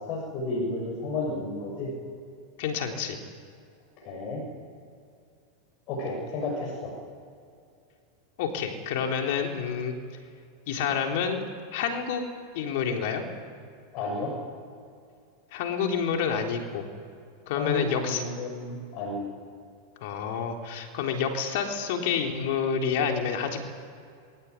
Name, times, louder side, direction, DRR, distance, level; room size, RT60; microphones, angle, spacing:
voice 1, 0.0-1.9 4.0-4.4 5.9-6.9 13.9-14.3 17.5-19.3, left 2 dB, 50° left, -1 dB, 6.9 m, -32 dB
voice 2, 2.6-3.2 8.4-10.0 10.7-11.4 11.7-12.2 12.5-13.2 15.5-16.8 17.5-18.2 20.0-23.6, left 6 dB, 65° left, 3 dB, 3.6 m, -28 dB
22.0 x 16.5 x 9.8 m, 2.4 s
hypercardioid pair, 120°, 0 cm